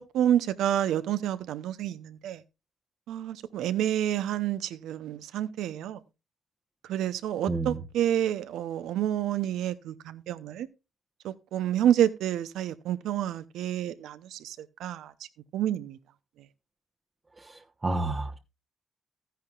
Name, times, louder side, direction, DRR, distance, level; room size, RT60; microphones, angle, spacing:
voice 1, 0.1-2.4 3.1-6.0 6.9-10.7 11.2-15.1 15.5-16.0, right 11 dB, 80° right, 0.7 m, -29 dB
voice 2, 7.5-7.8 17.4-18.4, right 2 dB, 35° right, 1.0 m, -30 dB
13.5 x 10.0 x 2.4 m
supercardioid pair, 55°, 0 cm